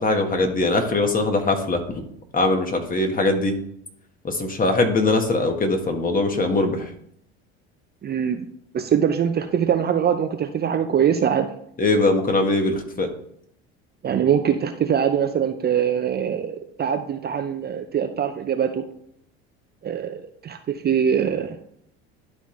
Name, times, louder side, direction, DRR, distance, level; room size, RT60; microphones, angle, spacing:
voice 1, 0.0-2.0 2.3-3.5 4.2-6.9 11.8-13.1, left 2 dB, 25° left, 5 dB, 1.5 m, -21 dB
voice 2, 8.0-8.4 8.7-11.5 14.0-18.8 19.8-21.6, right 8 dB, 30° right, 7 dB, 0.6 m, -23 dB
11.5 x 4.1 x 3.2 m, 0.68 s
hypercardioid pair, 75°, 32 cm